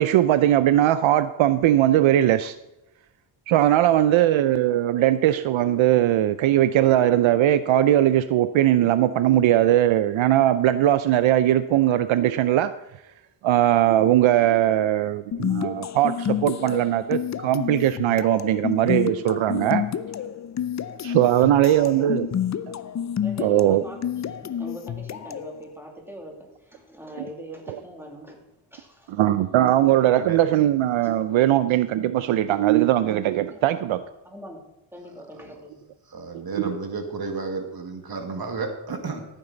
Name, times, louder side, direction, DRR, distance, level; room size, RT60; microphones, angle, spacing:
voice 1, 0.0-2.5 3.5-12.7 13.4-19.8 21.0-22.3 23.4-23.8 29.2-34.0 36.5-36.7, right 12 dB, 70° right, 13 dB, 0.6 m, -20 dB
voice 2, 3.8-4.3 21.2-21.7 23.2-29.1 33.5-33.9 34.2-34.6 34.9-35.9, equal, 5° right, 0 dB, 2.8 m, -42 dB
sound 1, 15.3-25.6, left 9 dB, 35° left, 0.5 m, -29 dB
voice 3, 36.1-39.3, right 4 dB, 45° right, 5 dB, 1.9 m, -32 dB
14.5 x 9.2 x 4.0 m, 0.94 s
cardioid pair, 110°, 49 cm